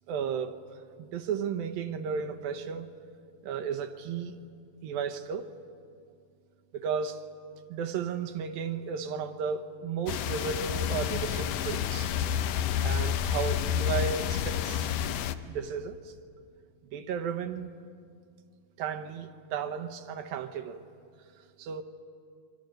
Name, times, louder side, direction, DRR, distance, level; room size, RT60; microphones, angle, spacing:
voice 1, 0.1-0.6 1.0-2.9 3.4-4.4 4.8-5.5 6.7-7.2 7.7-12.1 12.8-14.9 15.5-16.1 16.9-17.7 18.8-20.8 21.6-21.8, right 6 dB, 80° right, 7 dB, 2.8 m, -34 dB
sound 1, 10.1-15.3, left 9 dB, 90° left, 1.5 m, -29 dB
29.5 x 24.0 x 6.6 m, 2.2 s
omnidirectional pair, 4.2 m